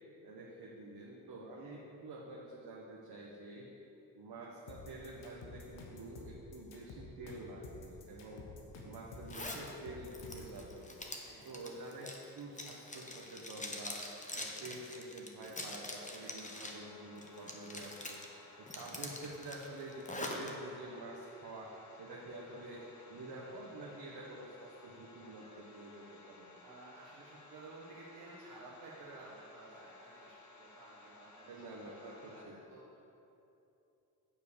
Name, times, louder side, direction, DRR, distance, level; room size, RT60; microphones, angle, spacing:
voice 1, 0.2-3.7 4.2-8.5 8.8-10.9 11.4-14.0 14.3-18.2 18.6-21.7 22.0-22.8 23.1-26.5 31.5-32.6, right 2 dB, 50° right, -4 dB, 1.5 m, -48 dB
sound 1, 4.7-10.6, left 3 dB, 70° left, 1.5 m, -50 dB
Zipper (clothing), 9.3-9.6 10.1-16.8 17.2-18.3 18.7-20.5, left 2 dB, 15° left, 1.4 m, -44 dB
voice 2, 11.2-11.5 16.2-16.5 26.6-32.4 32.7-33.0, right 2 dB, 80° right, -6 dB, 1.8 m, -54 dB
sound 2, 16.4-32.4, left 2 dB, 35° left, 1.5 m, -58 dB
9.2 x 4.7 x 6.9 m, 2.9 s
hypercardioid pair, 50°, 47 cm